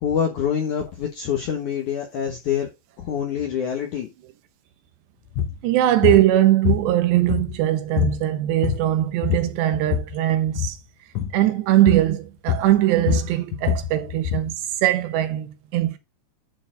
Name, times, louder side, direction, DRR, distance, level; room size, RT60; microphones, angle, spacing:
voice 1, 0.0-2.7 3.0-4.1, left 8 dB, 90° left, 1.7 m, -25 dB
sound 1, 5.3-5.6 6.0-6.3 6.6-7.7 8.0-8.2 8.5-8.9 9.2-10.1 10.5-10.8 11.1-11.4 11.9-12.1 12.5-14.5, left 9 dB, 70° left, 1.8 m, -24 dB
voice 2, 5.6-10.8 11.3-14.6 14.8-16.0, right 14 dB, 75° right, 2.9 m, -20 dB
11.0 x 4.4 x 3.9 m
omnidirectional pair, 5.5 m